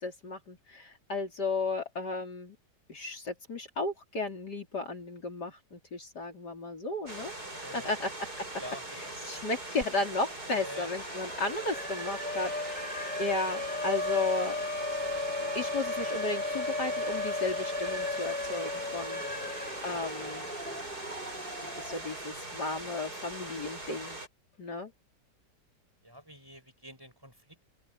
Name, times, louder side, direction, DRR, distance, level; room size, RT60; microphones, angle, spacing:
voice 1, 0.0-2.6 2.9-7.3 7.7-8.3 9.0-14.6 15.4-19.2 19.8-20.5 21.6-24.2 24.6-24.9, left 3 dB, 65° left, 4.2 m, -34 dB
sound 1, 7.1-24.3, right 2 dB, 60° right, 8.8 m, -41 dB
voice 2, 7.6-8.0 8.6-9.4 10.5-10.9 19.2-19.5 19.9-20.9 26.0-27.7, equal, 10° right, 7.4 m, -48 dB
Siren, 9.8-9.9 10.2-22.2, left 2 dB, 5° left, 2.0 m, -35 dB
open air
omnidirectional pair, 1.9 m